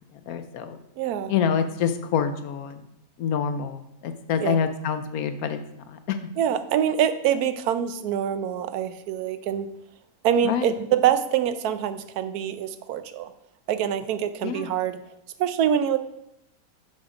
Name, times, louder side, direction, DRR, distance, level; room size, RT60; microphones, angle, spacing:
voice 1, 0.3-0.8 1.3-2.8 3.2-6.2 10.4-10.7 14.4-14.7, left 7 dB, 70° left, 10 dB, 1.0 m, -27 dB
voice 2, 1.0-1.3 4.4-4.6 6.4-9.7 10.2-13.3 13.7-15.0 15.4-16.0, right 9 dB, 80° right, 11 dB, 1.1 m, -25 dB
6.4 x 5.8 x 4.9 m, 0.80 s
omnidirectional pair, 1.6 m